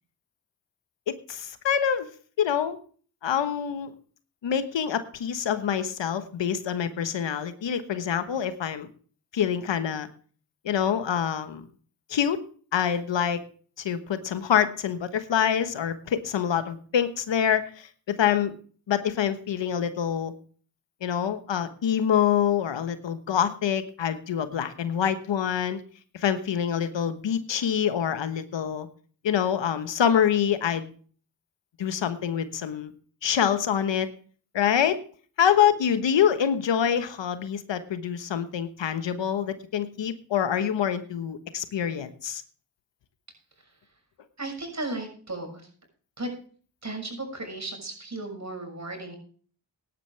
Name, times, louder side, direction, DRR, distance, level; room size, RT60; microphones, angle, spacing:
voice 1, 1.1-2.1 2.4-2.8 3.2-3.9 4.4-8.9 9.3-10.1 10.6-11.6 12.1-12.4 12.7-13.4 13.8-17.9 18.2-18.5 18.9-20.3 21.0-25.8 26.1-28.9 29.2-30.9 31.8-32.9 33.2-34.1 34.5-35.0 35.4-42.4, left 8 dB, 85° left, 11 dB, 1.3 m, -26 dB
voice 2, 44.4-45.6 46.2-46.3 46.8-49.2, right 2 dB, 40° right, 3 dB, 6.4 m, -35 dB
16.5 x 11.0 x 3.4 m, 0.43 s
cardioid pair, 50°, 43 cm